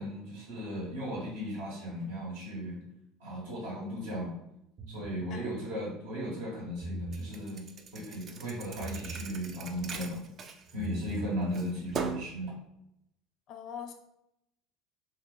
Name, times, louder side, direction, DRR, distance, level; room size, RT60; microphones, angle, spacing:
voice 1, 0.0-2.8 3.2-4.3 4.9-7.6 7.9-10.2 10.7-12.5, equal, 80° right, -5 dB, 1.5 m, -36 dB
sound 1, 4.8-5.3 6.6-7.3 8.8-9.3 10.6-11.3, right 3 dB, 65° right, 1.3 m, -40 dB
Thump thud, 7.1-11.2 11.5-12.4, right 5 dB, 45° right, 0.4 m, -40 dB
voice 2, 13.5-13.9, left 8 dB, 60° left, 6 dB, 0.5 m, -42 dB
2.7 x 2.3 x 3.9 m, 0.81 s
hypercardioid pair, 85°, 0 cm